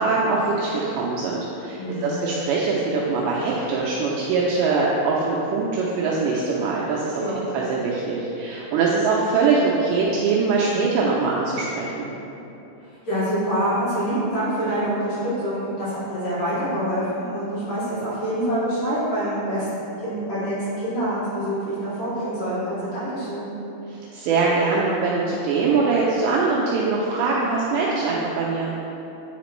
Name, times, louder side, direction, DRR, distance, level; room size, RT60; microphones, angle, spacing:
voice 1, 0.0-7.2 7.5-12.1 23.9-28.7, right 4 dB, 85° right, -5 dB, 2.5 m, -22 dB
voice 2, 1.8-2.1 7.2-7.4 13.1-23.5, right 1 dB, 60° left, -12 dB, 2.8 m, -26 dB
9.1 x 5.0 x 3.1 m, 3.0 s
omnidirectional pair, 5.5 m